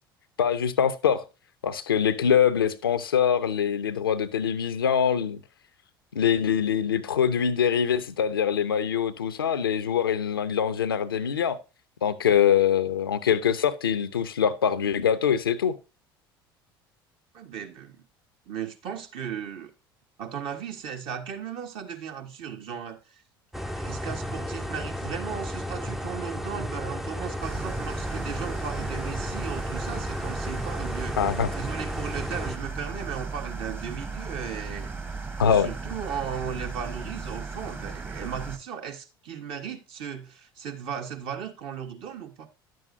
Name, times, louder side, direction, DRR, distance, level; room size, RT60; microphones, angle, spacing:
voice 1, 0.4-1.2 1.6-5.4 6.1-11.6 12.0-15.7 31.2-31.5 35.4-35.7, left 8 dB, 75° left, 0.6 m, -24 dB
voice 2, 17.3-18.0 18.5-19.7 20.2-23.2 23.6-31.2 31.6-34.9 35.4-42.5, right 8 dB, 50° right, 1.3 m, -36 dB
sound 1, 23.5-32.6, equal, ahead, 0.5 m, -33 dB
sound 2, 27.4-38.6, right 4 dB, 15° right, 1.1 m, -36 dB
11.0 x 7.7 x 2.7 m
figure-of-eight pair, 65°, 12 cm